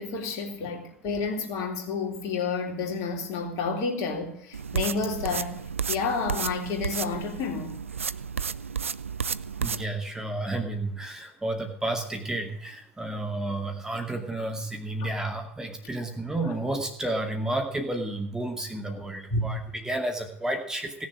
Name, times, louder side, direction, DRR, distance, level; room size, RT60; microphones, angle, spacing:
voice 1, 0.0-5.6 5.9-7.8 15.0-15.1 18.9-19.0 19.3-19.6, left 4 dB, 45° left, 3.5 m, -30 dB
sound 1, 4.5-9.8, right 6 dB, 85° right, 0.5 m, -32 dB
voice 2, 9.6-21.1, right 2 dB, 10° right, 2.4 m, -31 dB
17.5 x 7.1 x 8.8 m
figure-of-eight pair, 85°, 7 cm